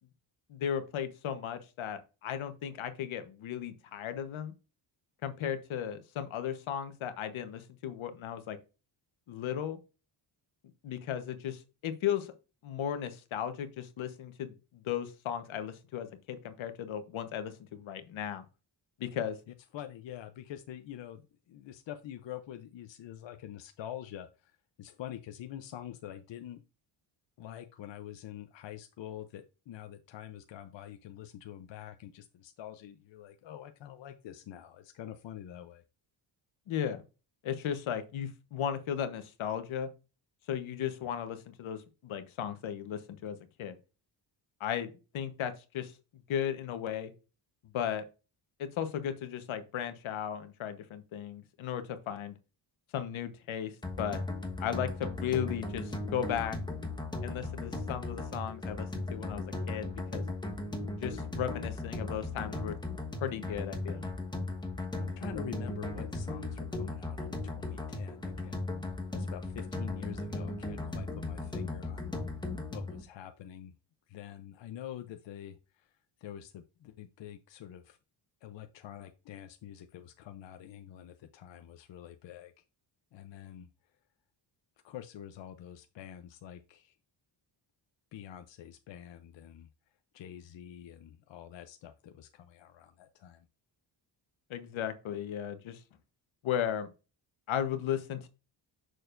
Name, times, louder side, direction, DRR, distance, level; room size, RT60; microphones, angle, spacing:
voice 1, 0.5-4.5 5.2-8.6 9.3-9.8 10.8-12.3 12.6-18.4 19.0-19.4 36.7-37.0 37.4-39.9 40.5-43.8 44.6-45.9 46.3-47.1 47.7-48.0 48.6-52.3 52.9-53.7 54.0-54.2 54.6-56.6 57.2-60.2 61.0-62.8 63.2-64.0 94.5-95.8 96.4-96.9 97.5-98.3, left 9 dB, 85° left, 9 dB, 1.2 m, -35 dB
voice 2, 19.7-26.6 27.4-35.8 65.0-68.6 68.9-72.1 72.7-73.7 74.1-75.9 76.2-78.0 78.4-82.6 83.1-83.7 84.8-87.0 88.1-89.7 90.1-93.5, left 11 dB, 65° left, 7 dB, 0.7 m, -46 dB
sound 1, 53.8-73.0, left 2 dB, 10° left, 1.3 m, -37 dB
6.8 x 6.4 x 2.5 m, 0.31 s
cardioid pair, 115°, 47 cm